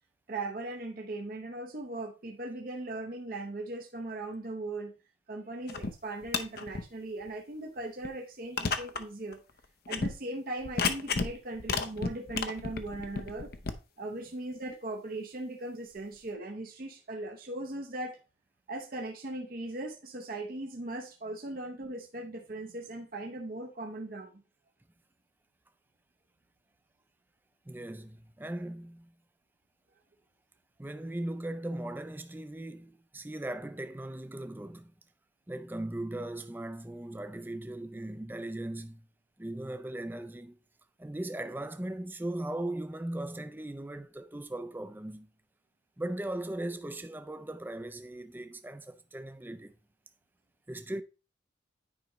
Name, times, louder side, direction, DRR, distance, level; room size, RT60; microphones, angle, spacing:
voice 1, 0.3-5.0 5.3-9.4 9.9-13.5 14.0-18.2 18.7-24.3, right 2 dB, 50° right, 0.7 m, -39 dB
sound 1, 5.7-5.9 6.2-6.8 7.3-7.4 8.0-8.1 8.6-9.0 9.3-9.4 9.9-10.1 10.6-11.3 11.6-13.7, left 4 dB, 55° left, 0.7 m, -32 dB
voice 2, 27.7-29.1 30.8-34.9 35.5-39.0 39.4-40.6 41.0-45.3 46.0-49.7 50.7-51.0, right 1 dB, 10° right, 0.4 m, -38 dB
9.5 x 5.0 x 3.0 m
head